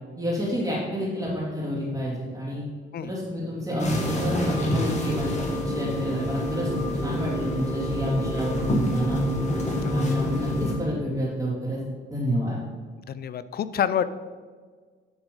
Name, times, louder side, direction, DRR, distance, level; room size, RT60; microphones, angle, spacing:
voice 1, 0.2-2.6 3.0-9.2 9.9-11.8 12.1-12.6, equal, 15° right, -9 dB, 2.5 m, -29 dB
sound 1, 3.8-10.7, left 1 dB, 35° left, 2.0 m, -27 dB
voice 2, 13.1-14.0, left 9 dB, 50° left, 14 dB, 0.5 m, -27 dB
11.0 x 4.0 x 5.3 m, 1.5 s
cardioid pair, 90°, 20 cm